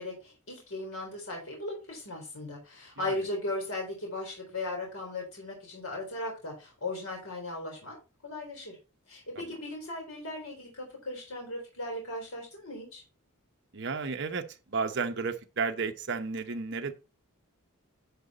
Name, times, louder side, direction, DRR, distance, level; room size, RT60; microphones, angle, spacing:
voice 1, 0.0-8.0 8.2-8.8 9.1-13.0, left 2 dB, 70° left, 3.9 m, -37 dB
voice 2, 13.7-16.9, right 4 dB, 55° right, 0.9 m, -33 dB
10.5 x 5.0 x 4.2 m
head